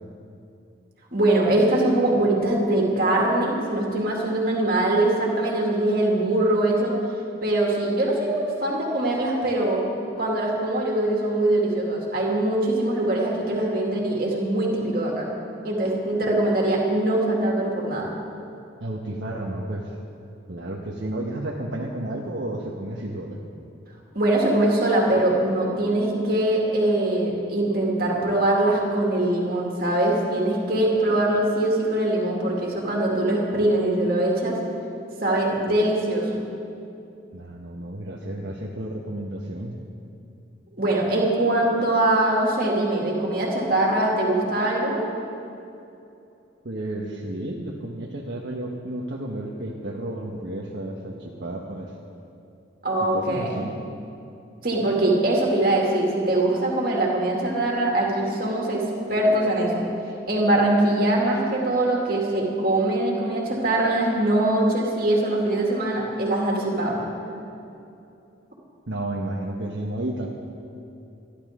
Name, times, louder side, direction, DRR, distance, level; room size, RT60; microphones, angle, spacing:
voice 1, 1.1-6.9 7.4-9.8 10.2-15.3 15.6-18.1 24.1-34.6 35.2-36.4 40.8-45.0 52.8-53.6 54.6-59.8 60.3-67.1, right 1 dB, 50° right, -2 dB, 2.5 m, -22 dB
voice 2, 18.8-20.0 20.5-23.4 37.3-39.8 46.6-51.9 53.1-53.7 68.9-70.3, right 1 dB, 65° right, -2 dB, 1.2 m, -32 dB
25.0 x 11.5 x 3.7 m, 2.7 s
head